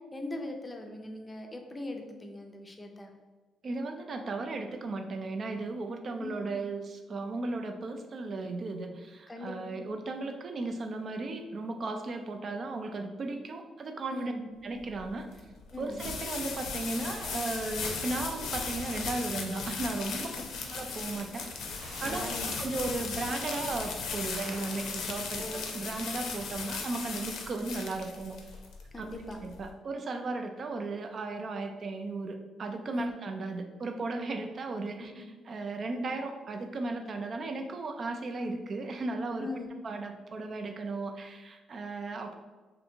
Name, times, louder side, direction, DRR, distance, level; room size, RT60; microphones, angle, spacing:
voice 1, 0.1-3.1 6.2-6.4 9.3-9.8 14.1-14.4 15.7-16.1 22.0-22.5 25.4-25.7 28.9-29.4 32.9-33.1 35.0-35.1 39.4-39.7, left 2 dB, 20° left, 3 dB, 0.5 m, -40 dB
voice 2, 3.6-14.3 14.6-15.3 15.8-20.3 20.7-25.5 25.7-28.4 29.0-29.1 29.4-39.5 39.8-42.4, right 3 dB, 45° right, 5 dB, 0.4 m, -36 dB
sound 1, 14.8-29.7, left 5 dB, 80° left, 0.5 m, -37 dB
sound 2, 20.6-26.2, right 2 dB, 75° right, 0.8 m, -50 dB
2.6 x 2.6 x 4.3 m, 1.3 s
cardioid pair, 90°, 0 cm